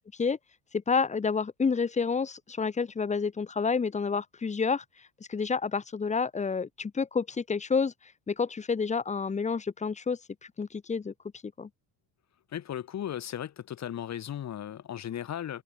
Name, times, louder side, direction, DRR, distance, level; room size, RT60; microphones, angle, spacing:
voice 1, 0.9-4.8 5.3-7.9 8.3-10.2 10.6-11.1 11.4-11.7, left 5 dB, 15° left, 1.2 m, -29 dB
voice 2, 12.5-15.6, left 10 dB, 40° left, 3.0 m, -36 dB
cardioid pair, 135°, 42 cm